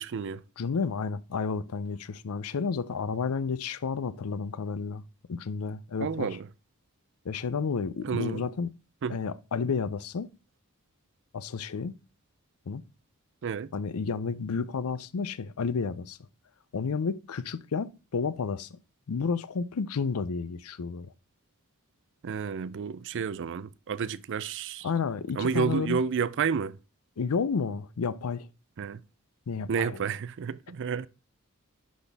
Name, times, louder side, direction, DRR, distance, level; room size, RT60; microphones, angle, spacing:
voice 1, 0.0-0.4 6.0-6.5 8.0-8.4 9.0-9.2 13.4-13.7 22.2-24.9 25.4-26.8 28.8-29.0 29.7-31.1, right 6 dB, 55° right, 0.4 m, -30 dB
voice 2, 0.6-5.0 5.3-6.3 7.2-8.7 9.1-10.3 11.3-11.9 12.7-12.8 13.7-16.2 16.7-18.8 19.1-21.1 24.8-26.0 27.2-28.5 29.5-30.0, left 5 dB, 75° left, 0.5 m, -31 dB
11.0 x 4.1 x 3.4 m
head